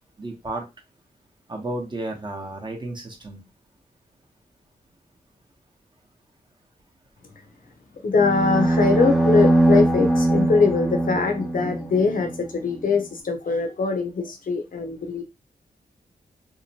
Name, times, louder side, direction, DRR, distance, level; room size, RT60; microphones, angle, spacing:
voice 1, 0.2-0.6 1.5-3.4, right 2 dB, 30° right, 1 dB, 0.9 m, -32 dB
voice 2, 8.0-15.2, left 4 dB, 55° left, 5 dB, 0.6 m, -22 dB
sound 1, 8.2-12.4, right 1 dB, ahead, 0.5 m, -21 dB
2.8 x 2.1 x 2.8 m, 0.23 s
cardioid pair, 75°, 17 cm